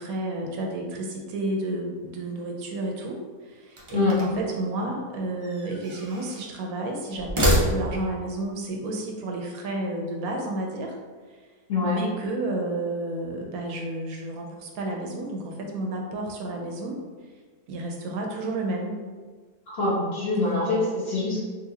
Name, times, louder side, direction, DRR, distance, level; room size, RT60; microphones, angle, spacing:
voice 1, 0.0-11.0 11.8-17.0 17.7-19.0, right 2 dB, 75° right, 1 dB, 1.0 m, -31 dB
sound 1, 3.7-4.5 5.4-6.5 7.1-8.2, equal, 55° right, 0.3 m, -26 dB
voice 2, 11.7-12.0 19.7-21.4, left 3 dB, 45° left, -7 dB, 1.0 m, -24 dB
4.0 x 2.6 x 2.7 m, 1.5 s
omnidirectional pair, 1.6 m